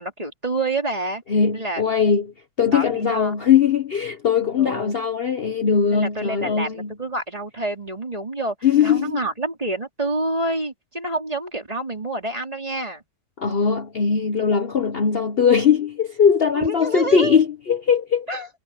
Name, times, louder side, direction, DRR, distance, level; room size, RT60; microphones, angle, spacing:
voice 1, 0.0-1.2 1.5-1.8 2.7-3.4 4.6-5.0 5.9-8.6 8.8-13.0 16.5-17.4 18.3-18.5, right 2 dB, 15° right, 3.7 m, -28 dB
voice 2, 1.3-2.3 2.6-6.9 8.6-9.2 13.4-18.3, left 7 dB, 60° left, 0.6 m, -20 dB
omnidirectional pair, 2.4 m